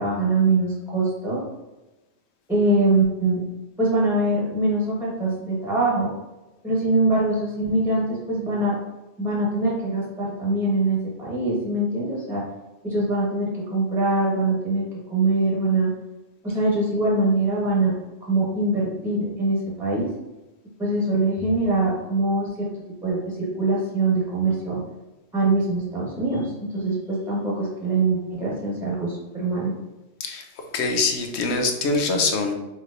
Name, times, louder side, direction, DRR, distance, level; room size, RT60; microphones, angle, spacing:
voice 1, 0.0-1.4 2.5-3.4 3.8-6.1 6.6-8.8 9.2-12.4 12.8-14.8 15.1-15.9 16.4-17.9 18.3-20.1 20.8-22.7 23.0-24.8 25.3-29.7, right 2 dB, ahead, -5 dB, 1.1 m, -23 dB
voice 2, 30.2-32.5, left 3 dB, 70° left, 4 dB, 0.9 m, -24 dB
5.6 x 3.1 x 2.5 m, 1.0 s
omnidirectional pair, 1.2 m